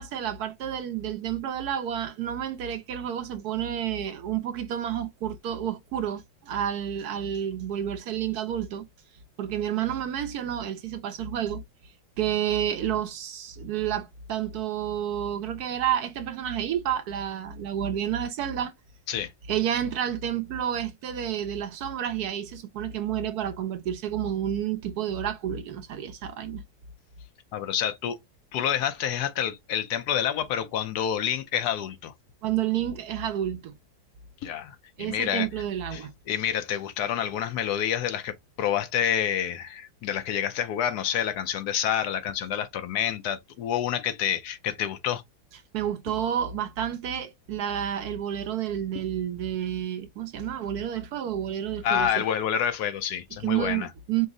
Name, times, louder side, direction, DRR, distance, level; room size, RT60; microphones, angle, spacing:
voice 1, 0.0-8.9 9.4-11.6 12.2-18.7 19.5-26.6 32.4-33.7 35.0-36.1 45.7-52.2 53.4-54.3, right 10 dB, 70° right, 1.0 m, -30 dB
voice 2, 27.5-28.2 28.5-32.1 34.4-35.5 35.9-45.2 51.8-53.9, left 9 dB, 70° left, 1.0 m, -28 dB
5.2 x 2.0 x 3.6 m
omnidirectional pair, 2.0 m